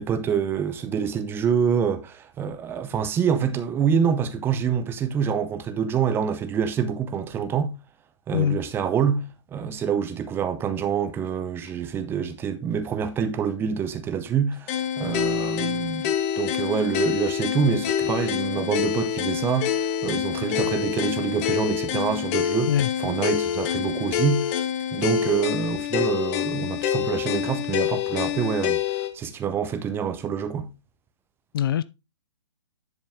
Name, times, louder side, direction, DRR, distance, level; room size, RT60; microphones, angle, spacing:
voice 1, 0.0-7.8 8.3-24.6 24.9-30.7, right 7 dB, 15° right, 0.8 m, -26 dB
voice 2, 8.3-8.6 22.7-22.9 31.5-31.8, left 10 dB, 45° left, 0.6 m, -22 dB
sound 1, 14.7-29.1, left 9 dB, 30° left, 0.9 m, -26 dB
10.5 x 5.2 x 3.5 m
figure-of-eight pair, 130°, 16 cm